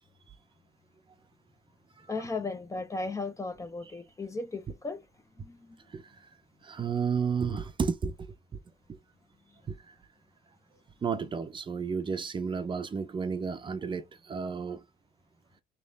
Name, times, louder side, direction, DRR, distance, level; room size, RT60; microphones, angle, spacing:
voice 1, 2.1-5.0 5.4-5.8, left 3 dB, 20° left, 0.6 m, -36 dB
voice 2, 6.6-8.1 8.9-9.0 9.7-9.9 11.0-14.8, right 6 dB, 30° right, 0.6 m, -32 dB
3.4 x 3.0 x 4.0 m
cardioid pair, 110°, 17 cm